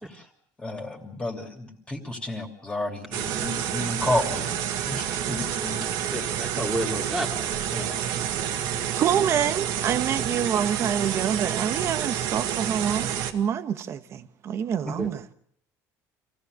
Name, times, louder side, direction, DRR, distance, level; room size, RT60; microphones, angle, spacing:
voice 1, 0.6-4.6 4.9-5.8 7.7-8.0 14.9-15.0, left 1 dB, 15° left, 2.9 m, -31 dB
sound 1, 3.1-13.3, right 9 dB, 75° right, 2.0 m, -29 dB
voice 2, 6.1-7.5 15.0-15.1, equal, 5° right, 2.7 m, -30 dB
voice 3, 8.9-15.3, right 8 dB, 40° right, 1.2 m, -27 dB
26.5 x 16.5 x 6.7 m
cardioid pair, 150°, 7 cm